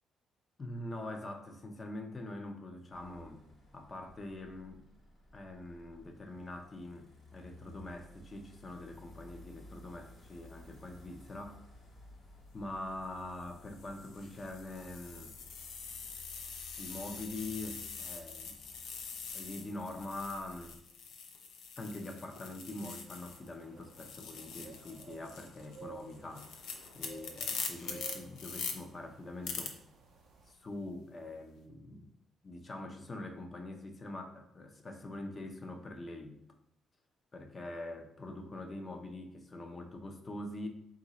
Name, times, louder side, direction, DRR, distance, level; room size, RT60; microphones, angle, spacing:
voice 1, 0.6-3.4 3.7-4.8 5.3-11.6 12.5-15.3 16.8-18.6 19.3-20.8 21.8-26.6 26.9-29.8 30.5-32.1 32.4-36.4 37.3-40.7, left 2 dB, 35° left, 5 dB, 0.6 m, -44 dB
sound 1, 2.9-20.8, equal, 55° left, 1.3 m, -56 dB
sound 2, 12.4-12.6 13.4-23.5 23.8-28.7 29.4-29.7, left 6 dB, 85° left, 0.6 m, -44 dB
sound 3, 23.1-30.5, right 5 dB, 60° right, 0.4 m, -54 dB
3.9 x 2.6 x 4.1 m, 0.77 s
cardioid pair, 90°, 0 cm